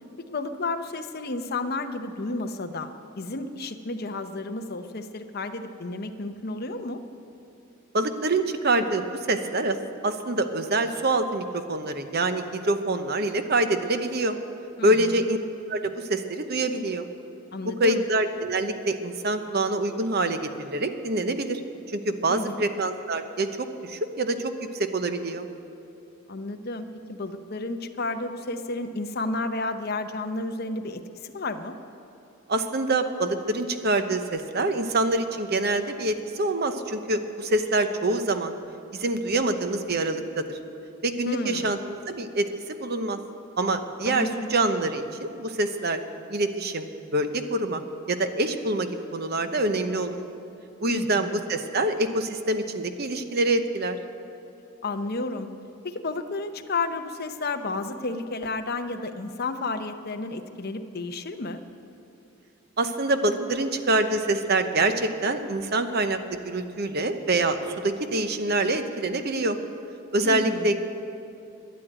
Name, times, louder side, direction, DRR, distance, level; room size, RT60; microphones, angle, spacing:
voice 1, 0.2-2.9 3.2-7.0 14.8-15.3 17.5-18.0 22.3-22.6 26.3-31.8 41.3-41.7 44.0-44.5 50.9-51.4 54.8-55.5 55.8-61.6 70.2-70.8, left 2 dB, 45° left, 7 dB, 0.8 m, -32 dB
voice 2, 7.9-9.8 10.0-14.4 14.8-15.4 15.7-17.1 17.8-21.6 21.9-25.5 32.5-38.6 38.9-40.6 41.0-43.2 43.6-46.0 46.3-47.8 48.1-50.2 50.8-54.0 62.8-69.6 70.1-70.8, right 2 dB, 45° right, 8 dB, 0.8 m, -26 dB
12.5 x 10.5 x 9.1 m, 2.8 s
head